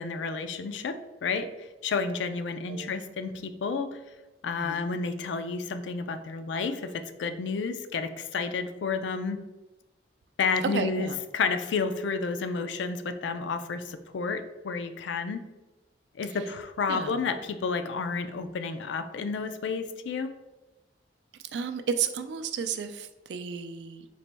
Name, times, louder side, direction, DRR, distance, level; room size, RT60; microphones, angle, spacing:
voice 1, 0.0-1.5 1.8-4.0 4.4-9.4 10.4-11.1 11.3-15.5 16.2-20.3, left 5 dB, 80° left, 9 dB, 0.4 m, -31 dB
voice 2, 4.5-4.8 10.7-11.2 16.2-16.5 16.9-17.3 21.5-24.1, right 6 dB, 70° right, 9 dB, 0.4 m, -33 dB
4.1 x 2.9 x 3.3 m, 1.1 s
head